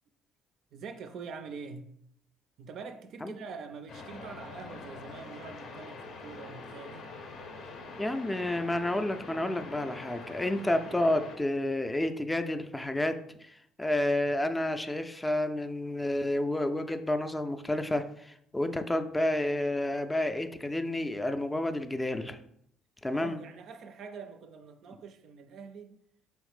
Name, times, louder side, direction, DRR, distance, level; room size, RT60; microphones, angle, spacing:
voice 1, 0.7-1.9 2.6-7.0 23.1-26.0, right 5 dB, 55° right, 0.4 m, -44 dB
sound 1, 3.9-11.4, left 3 dB, 55° left, 0.6 m, -44 dB
voice 2, 8.0-22.4 23.0-23.4, left 1 dB, 15° left, 0.4 m, -30 dB
4.3 x 3.1 x 3.2 m
figure-of-eight pair, 50°, 0 cm